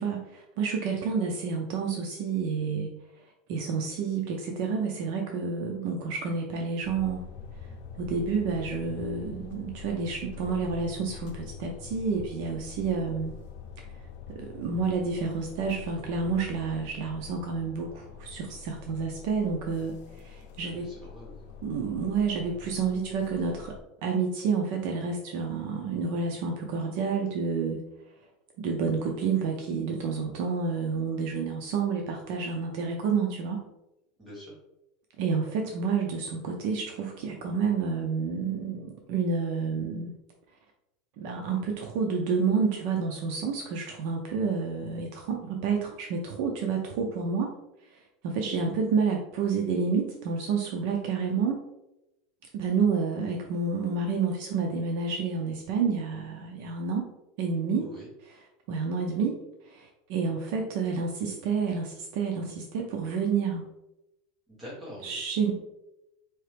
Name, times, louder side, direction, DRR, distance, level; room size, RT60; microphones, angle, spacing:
voice 1, 0.0-2.9 3.5-7.2 8.0-13.3 14.3-20.9 21.6-23.7 24.0-27.8 28.6-33.6 35.2-40.1 41.2-47.5 47.9-51.6 52.5-57.0 57.4-57.8 58.7-59.4 59.6-63.7 65.0-65.5, right 5 dB, 50° right, 2 dB, 0.5 m, -29 dB
sound 1, 6.8-23.8, left 6 dB, 65° left, 0.6 m, -45 dB
voice 2, 20.6-21.5 34.2-34.6 57.8-58.1 64.5-65.2, equal, 10° right, -6 dB, 1.5 m, -44 dB
4.4 x 2.9 x 3.3 m, 0.90 s
supercardioid pair, 175°, 0 cm